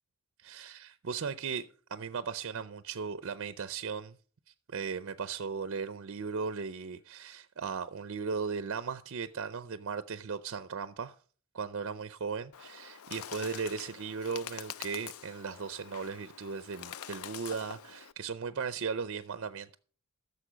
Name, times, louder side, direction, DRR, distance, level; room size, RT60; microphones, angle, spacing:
voice 1, 0.4-4.2 4.7-11.2 11.5-19.8, right 5 dB, 60° right, 0.5 m, -37 dB
Bird, 12.5-18.1, left 9 dB, 90° left, 0.5 m, -45 dB
14.5 x 6.8 x 5.0 m
head